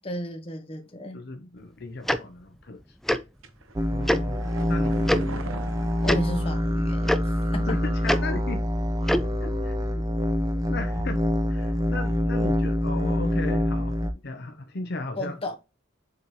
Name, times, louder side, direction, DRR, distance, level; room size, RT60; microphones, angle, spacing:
voice 1, 0.0-1.2 6.0-7.8 15.2-15.5, left 1 dB, 30° left, 1.3 m, -34 dB
voice 2, 1.1-3.0 3.9-5.2 7.7-8.7 9.4-9.8 10.7-15.4, left 3 dB, 50° left, 0.8 m, -36 dB
Tick-tock, 2.1-2.2 3.1-3.2 4.1-4.2 5.1-5.2 6.0-6.2 7.1-7.2 8.1-8.2 9.0-9.3, equal, ahead, 0.4 m, -22 dB
sound 1, 3.4-7.1 7.4-7.5, right 2 dB, 75° right, 1.0 m, -41 dB
sound 2, 3.8-14.1, equal, 15° right, 0.7 m, -26 dB
7.4 x 4.1 x 3.2 m
head